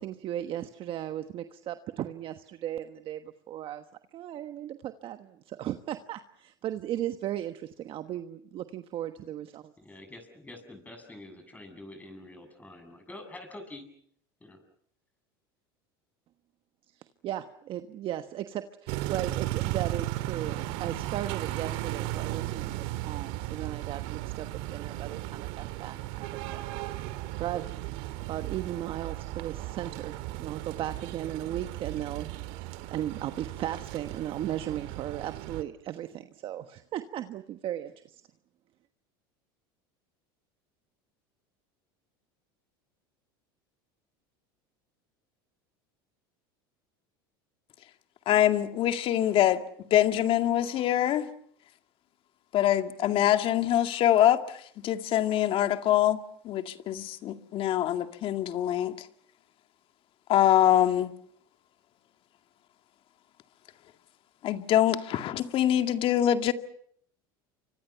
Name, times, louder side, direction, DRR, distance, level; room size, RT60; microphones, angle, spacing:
voice 1, 0.0-3.8 4.1-9.7 17.2-26.6 27.4-32.3 32.9-38.2, right 12 dB, 45° right, 1.3 m, -36 dB
voice 2, 9.8-13.9 14.4-14.6, left 2 dB, 15° left, 7.6 m, -46 dB
sound 1, 18.9-35.6, right 16 dB, 65° right, 1.9 m, -36 dB
voice 3, 48.3-49.6 49.9-51.3 52.5-56.2 56.4-59.1 60.3-61.1 64.4-66.5, left 11 dB, 50° left, 2.1 m, -24 dB
29.5 x 25.0 x 5.8 m
supercardioid pair, 105°, 12 cm